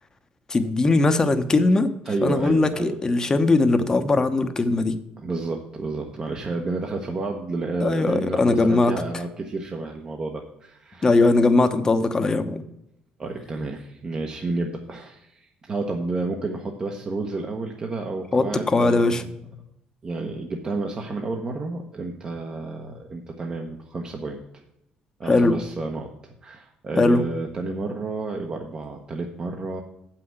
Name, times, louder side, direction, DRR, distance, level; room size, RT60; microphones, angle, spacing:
voice 1, 0.5-1.9 2.2-4.9 7.8-8.9 11.0-12.6 18.3-19.2 25.3-25.6 27.0-27.2, left 3 dB, 25° left, 8 dB, 0.9 m, -20 dB
voice 2, 2.0-3.0 5.2-11.2 13.2-19.3 20.0-24.4 25.2-26.1 26.4-29.8, right 3 dB, 30° right, 2 dB, 1.0 m, -30 dB
7.5 x 5.9 x 7.8 m, 0.82 s
cardioid pair, 115°, 3 cm